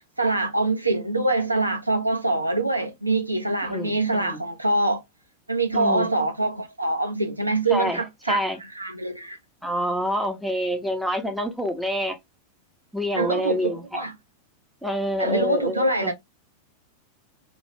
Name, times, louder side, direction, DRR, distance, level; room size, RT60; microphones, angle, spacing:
voice 1, 0.2-5.0 5.5-8.4 8.7-9.4 13.1-14.1 15.2-16.1, right 2 dB, 85° right, 0.6 m, -24 dB
voice 2, 3.6-4.4 5.7-6.1 7.7-8.6 9.6-12.2 12.9-14.1 14.8-16.1, equal, ahead, 0.9 m, -27 dB
3.0 x 2.5 x 2.9 m
figure-of-eight pair, 90°, 0 cm